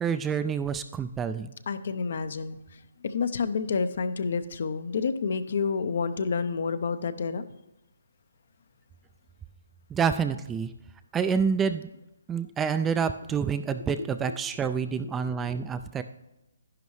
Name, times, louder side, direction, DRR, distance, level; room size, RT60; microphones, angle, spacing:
voice 1, 0.0-1.5 9.9-10.7 11.1-11.9 12.3-16.0, right 6 dB, 10° right, 10 dB, 0.3 m, -28 dB
voice 2, 1.7-2.6 3.0-7.4 14.0-14.1 15.0-15.1 15.4-15.5, left 5 dB, 60° left, 12 dB, 0.6 m, -29 dB
10.5 x 10.5 x 3.2 m, 0.92 s
hypercardioid pair, 155°, 0 cm